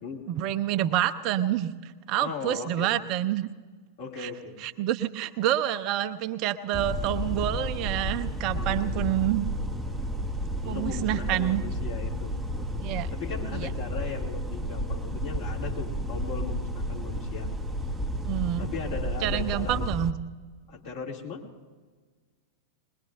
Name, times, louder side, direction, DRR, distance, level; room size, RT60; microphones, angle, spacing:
voice 1, 0.3-3.5 4.2-4.3 4.6-9.5 10.6-11.6 12.8-13.1 13.5-13.7 18.2-18.7 19.2-20.1, right 12 dB, 40° right, 11 dB, 0.6 m, -28 dB
voice 2, 2.2-2.9 4.0-4.6 8.5-9.1 10.6-12.7 13.1-17.5 18.6-19.8 20.7-21.4, left 5 dB, 50° left, 0 dB, 2.8 m, -38 dB
sound 1, 6.7-20.1, equal, 10° right, 0.8 m, -32 dB
21.0 x 21.0 x 2.6 m, 1.4 s
figure-of-eight pair, 90°, 0 cm